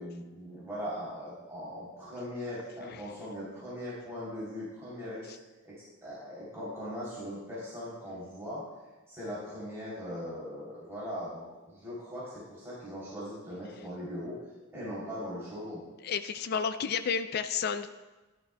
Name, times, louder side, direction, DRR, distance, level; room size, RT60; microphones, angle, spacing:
voice 1, 0.0-5.4 5.6-8.6 9.1-14.4 14.7-15.8, equal, 15° right, -9 dB, 3.2 m, -40 dB
voice 2, 16.0-17.9, left 6 dB, 50° left, 9 dB, 0.4 m, -31 dB
13.5 x 11.0 x 2.3 m, 1.2 s
head